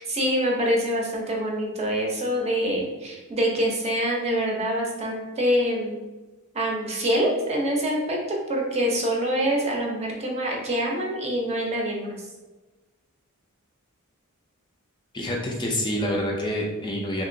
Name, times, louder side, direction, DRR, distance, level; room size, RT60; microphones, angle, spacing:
voice 1, 0.0-6.0 6.5-12.2, equal, 30° right, -1 dB, 0.6 m, -25 dB
voice 2, 15.1-17.2, equal, 20° left, -1 dB, 0.4 m, -27 dB
2.9 x 2.8 x 2.6 m, 1.2 s
head